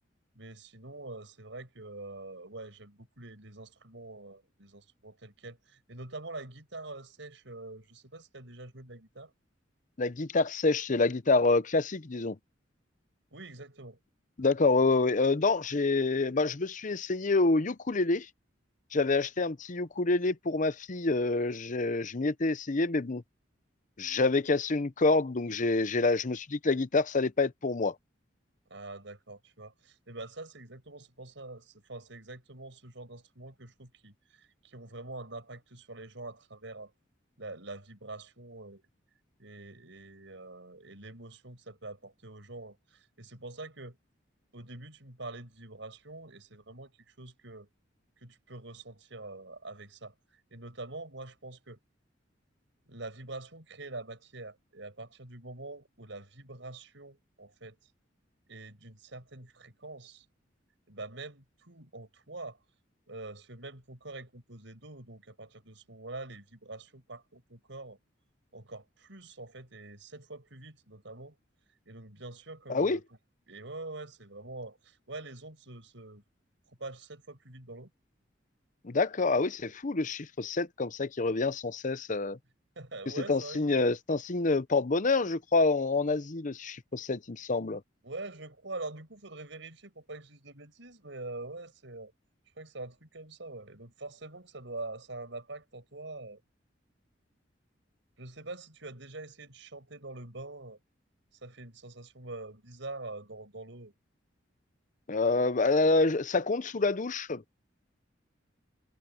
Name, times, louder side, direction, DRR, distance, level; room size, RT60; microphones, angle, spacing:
voice 1, 0.3-9.3 13.3-14.0 28.7-36.9 37.4-38.8 39.4-44.0 44.5-47.7 48.2-51.8 52.9-57.8 58.5-60.2 60.9-62.6 63.1-68.0 68.5-71.4 71.9-73.0 73.5-76.2 76.7-77.9 82.8-83.6 88.0-92.1 92.6-96.4 98.2-100.8 101.4-103.9, right 2 dB, 75° right, 6.3 m, -45 dB
voice 2, 10.0-12.4 14.4-18.3 18.9-23.2 24.0-27.9 72.7-73.0 78.8-82.4 83.1-87.8 105.1-107.4, left 3 dB, 45° left, 0.8 m, -27 dB
head